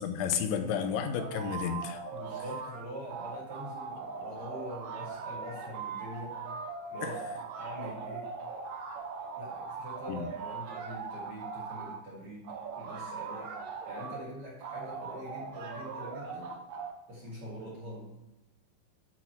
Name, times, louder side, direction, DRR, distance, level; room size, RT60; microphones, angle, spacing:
voice 1, 0.0-2.0 7.0-7.1 10.1-10.3, left 7 dB, 85° left, 7 dB, 3.1 m, -32 dB
sound 1, 1.2-2.8 3.1-12.0 12.4-14.2 14.6-16.9, right 5 dB, 70° right, 2.0 m, -40 dB
voice 2, 2.1-6.4 6.9-7.2 7.6-8.3 9.4-13.5 13.9-16.6 17.1-18.1, equal, 45° right, -5 dB, 2.1 m, -44 dB
12.5 x 4.3 x 4.4 m, 1.0 s
omnidirectional pair, 5.2 m